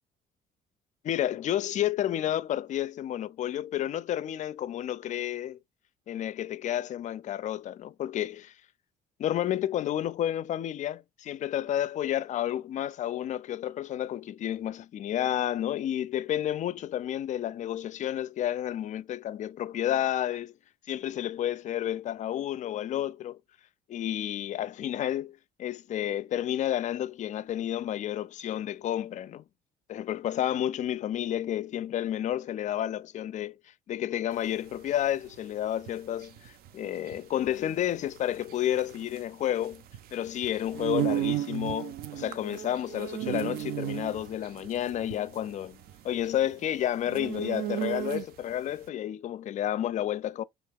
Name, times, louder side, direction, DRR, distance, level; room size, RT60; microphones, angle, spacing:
voice 1, 1.0-5.6 6.1-8.5 9.2-20.5 20.9-23.4 23.9-29.4 29.9-33.6 33.9-39.8 40.1-50.4, left 11 dB, 45° left, 0.4 m, -31 dB
sound 1, 34.4-48.6, right 13 dB, 65° right, 0.4 m, -35 dB
3.5 x 2.3 x 3.5 m
cardioid pair, 110°, 17 cm